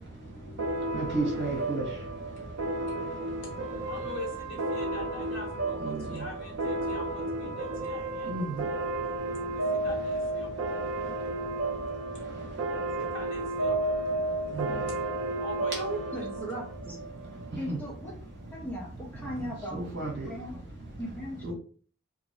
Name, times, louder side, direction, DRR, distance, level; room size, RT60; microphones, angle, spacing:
sound 1, 0.6-17.7, right 2 dB, 70° right, 0.5 m, -33 dB
voice 1, 0.9-1.8 5.8-5.9 8.3-8.5 14.5-14.7 17.7-17.8 19.7-20.3 21.4-21.5, right 2 dB, 55° right, -2 dB, 1.4 m, -31 dB
voice 2, 3.8-8.3 9.5-10.5 13.0-13.8 15.4-16.2, left 1 dB, 60° left, -2 dB, 1.3 m, -43 dB
voice 3, 15.8-17.0 17.6-18.1 18.5-19.8 20.3-20.6 21.0-21.5, equal, 10° left, -3 dB, 0.9 m, -38 dB
2.9 x 2.7 x 2.8 m, 0.41 s
head